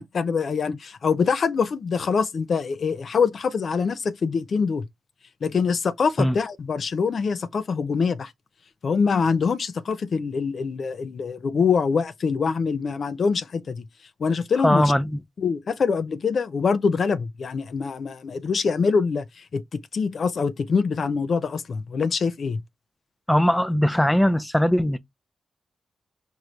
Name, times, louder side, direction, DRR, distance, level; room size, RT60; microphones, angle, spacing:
voice 1, 0.0-4.8 5.4-8.3 8.8-13.8 14.2-14.9 15.4-19.2 19.5-22.6, left 5 dB, 65° left, 0.4 m, -24 dB
voice 2, 14.6-15.2 23.3-25.0, equal, 10° left, 0.5 m, -20 dB
4.5 x 3.0 x 2.5 m
supercardioid pair, 50°, 0 cm